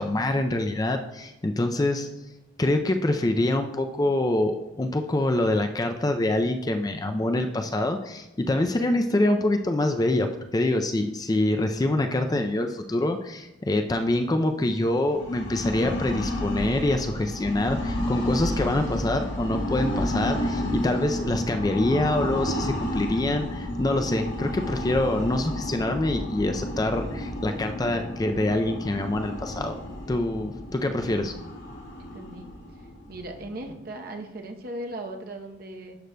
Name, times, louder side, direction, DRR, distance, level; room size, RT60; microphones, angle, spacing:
voice 1, 0.0-2.1 2.6-29.8 30.1-31.3, left 1 dB, 20° left, 6 dB, 0.3 m, -25 dB
sound 1, 15.0-33.7, left 1 dB, 75° left, 1.8 m, -31 dB
voice 2, 31.0-31.3 32.0-32.5 33.1-36.0, right 1 dB, 50° right, 3 dB, 0.8 m, -38 dB
11.5 x 6.3 x 2.2 m, 0.99 s
head